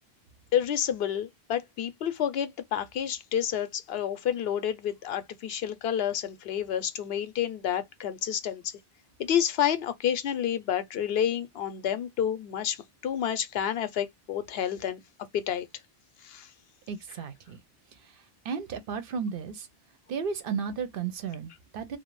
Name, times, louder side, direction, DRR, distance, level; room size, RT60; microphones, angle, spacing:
voice 1, 0.5-8.6 9.2-12.8 13.0-15.0 15.5-15.7 16.3-16.5, left 9 dB, 75° left, 0.8 m, -29 dB
voice 2, 16.9-17.6 18.4-19.7 20.1-22.0, right 6 dB, 65° right, 0.7 m, -34 dB
2.4 x 2.0 x 3.0 m
omnidirectional pair, 1.0 m